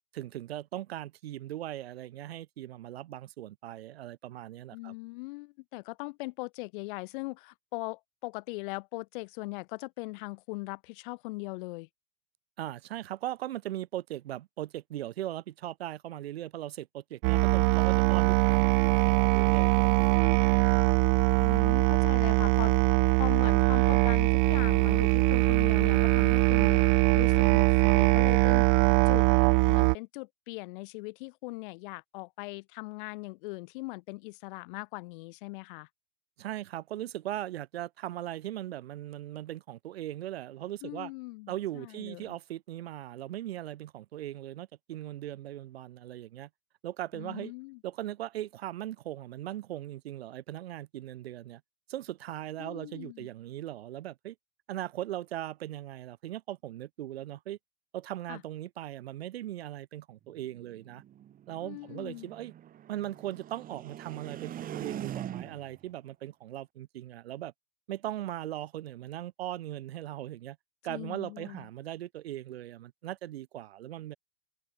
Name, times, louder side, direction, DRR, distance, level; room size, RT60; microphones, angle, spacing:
voice 1, 0.1-4.9 12.6-20.6 36.4-41.1 41.5-46.5 46.8-47.5 47.8-51.6 51.9-54.3 54.7-57.6 57.9-61.0 61.5-62.5 62.9-67.5 67.9-70.6 70.8-74.2, right 13 dB, 80° right, 1.6 m, -39 dB
voice 2, 4.7-11.9 21.4-22.7 23.2-26.8 27.1-28.7 29.1-29.3 29.7-35.9 40.8-42.3 47.1-47.8 52.6-53.3 58.3-58.4 61.6-62.3 70.9-71.7, left 25 dB, 55° left, 2.6 m, -40 dB
Musical instrument, 17.2-29.9, right 40 dB or more, 45° right, 0.7 m, -22 dB
sound 1, 60.3-65.8, right 11 dB, 30° right, 3.8 m, -42 dB
hypercardioid pair, 130°, 30 cm